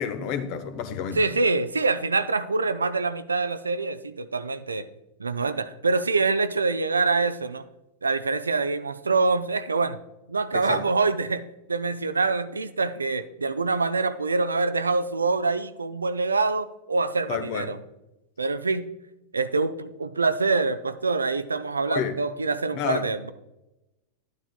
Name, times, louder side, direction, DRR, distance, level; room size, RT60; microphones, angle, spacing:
voice 1, 0.0-1.3 10.5-10.8 17.3-17.7 21.9-22.1 22.7-23.1, left 8 dB, 45° left, 0.9 m, -30 dB
voice 2, 1.1-4.9 5.2-7.6 8.0-10.0 10.3-17.8 18.4-18.9 19.3-23.3, right 3 dB, 75° right, 0.4 m, -25 dB
11.5 x 9.4 x 2.2 m
figure-of-eight pair, 90°, 0 cm